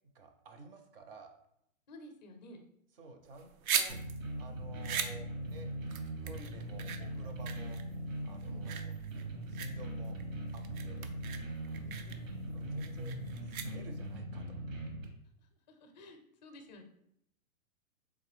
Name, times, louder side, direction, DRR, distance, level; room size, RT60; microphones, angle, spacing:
voice 1, 0.1-1.3 3.0-4.0 4.4-5.7 6.2-9.0 9.5-10.2 10.5-11.0 12.5-14.6, right 2 dB, 45° right, 5 dB, 0.6 m, -52 dB
voice 2, 1.9-2.6 8.4-8.9 11.8-12.5 15.4-16.8, left 1 dB, 35° left, 5 dB, 0.5 m, -53 dB
sound 1, 3.3-14.2, right 7 dB, 90° right, 0.6 m, -40 dB
sound 2, 3.9-15.0, right 1 dB, 70° right, 1.1 m, -40 dB
3.7 x 3.2 x 3.3 m, 0.75 s
hypercardioid pair, 160°, 41 cm